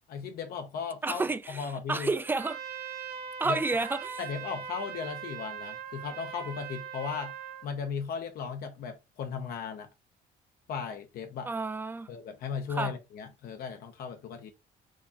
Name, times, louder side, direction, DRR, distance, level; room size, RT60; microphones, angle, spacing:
voice 1, 0.1-2.1 3.4-3.6 4.2-7.3 7.6-9.9 10.7-11.5 12.1-14.5, left 6 dB, 65° left, 0.6 m, -36 dB
voice 2, 1.0-2.6 3.4-4.2 11.4-12.1 12.7-12.9, right 3 dB, 10° right, 0.3 m, -30 dB
Trumpet, 2.2-7.7, right 8 dB, 65° right, 0.6 m, -40 dB
4.7 x 2.2 x 2.8 m
cardioid pair, 110°, 17 cm